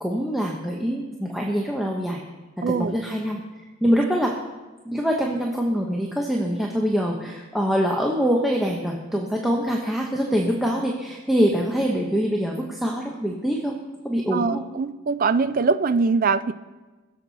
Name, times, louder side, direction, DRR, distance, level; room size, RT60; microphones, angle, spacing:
voice 1, 0.0-2.2 2.7-3.4 3.8-4.3 4.8-13.8 14.0-14.6, equal, ahead, -2 dB, 0.9 m, -24 dB
voice 2, 2.6-2.9 14.3-16.5, right 4 dB, 40° right, 13 dB, 0.4 m, -22 dB
21.0 x 7.4 x 4.1 m, 1.2 s
head